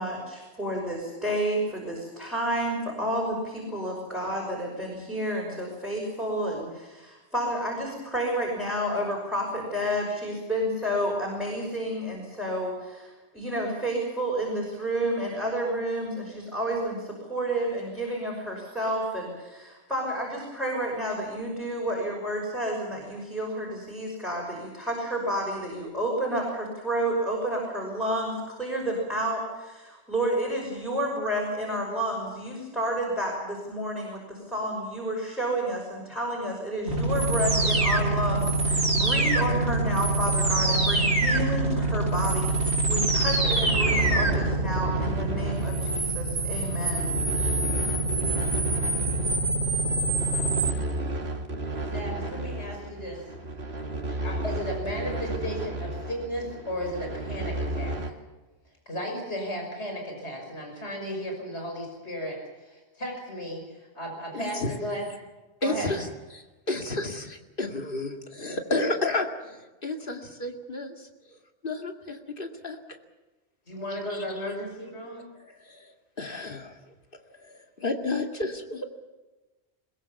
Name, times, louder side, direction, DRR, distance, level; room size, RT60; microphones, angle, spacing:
voice 1, 0.0-47.5, right 1 dB, ahead, -4 dB, 6.1 m, -30 dB
sound 1, 36.9-50.7, right 2 dB, 85° right, 3.6 m, -25 dB
sound 2, 43.6-58.1, right 1 dB, 65° right, 2.2 m, -33 dB
voice 2, 51.8-53.2 54.1-58.0 58.9-65.0 65.6-65.9 73.7-75.2, equal, 75° left, 1 dB, 6.2 m, -35 dB
voice 3, 64.3-64.7 65.6-71.1 71.6-72.8 73.9-74.2 75.4-76.7 77.3-78.9, left 2 dB, 50° left, 4 dB, 2.5 m, -32 dB
22.0 x 21.5 x 7.1 m, 1.2 s
omnidirectional pair, 1.1 m